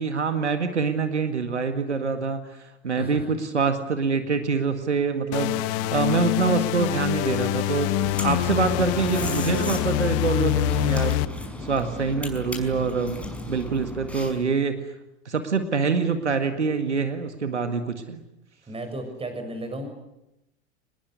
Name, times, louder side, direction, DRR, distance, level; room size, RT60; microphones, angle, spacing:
voice 1, 0.0-11.2 11.6-14.7 15.3-18.2, right 5 dB, 80° right, 8 dB, 2.0 m, -25 dB
sound 1, 5.3-11.2, left 16 dB, 45° left, 1.0 m, -25 dB
voice 2, 5.5-6.1 18.7-19.9, right 1 dB, 15° right, 6 dB, 7.2 m, -35 dB
sound 2, 8.0-14.5, equal, 5° left, 5.7 m, -35 dB
26.0 x 20.5 x 9.6 m, 0.88 s
figure-of-eight pair, 85°, 34 cm